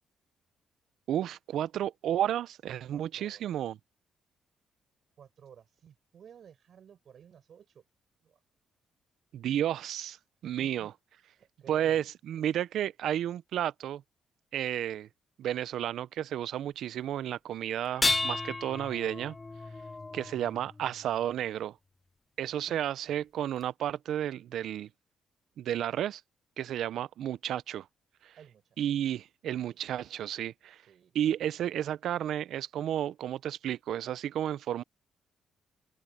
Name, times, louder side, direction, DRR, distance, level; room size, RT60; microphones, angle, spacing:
voice 1, 1.1-3.8 9.3-10.2 10.4-10.9 11.7-14.0 14.5-15.1 15.4-19.4 20.1-21.8 22.4-24.9 25.6-26.2 26.6-27.9 28.2-28.3 28.8-30.8 31.1-34.8, right 11 dB, 75° right, 0.5 m, -32 dB
voice 2, 2.9-3.7 5.2-7.9 8.2-8.4 10.4-10.9 11.3-12.1 20.1-20.4 23.0-23.2 28.4-28.8 29.7-29.8 30.7-31.2, right 8 dB, 60° right, 6.1 m, -55 dB
sound 1, 17.8-21.1 22.7-22.8 23.6-23.7, left 3 dB, 20° left, 0.3 m, -33 dB
cardioid pair, 90°, 0 cm